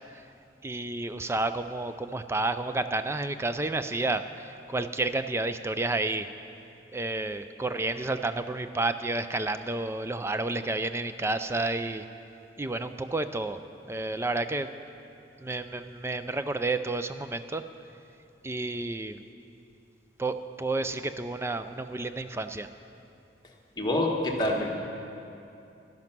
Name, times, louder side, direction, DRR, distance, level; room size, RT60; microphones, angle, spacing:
voice 1, 0.6-6.3 6.9-12.1 12.6-13.6 13.9-14.7 15.4-17.6 18.4-19.2 20.2-22.7, right 2 dB, 15° right, 10 dB, 0.4 m, -30 dB
voice 2, 23.8-24.7, left 1 dB, 25° left, -1 dB, 1.4 m, -26 dB
12.0 x 11.0 x 6.0 m, 2.7 s
head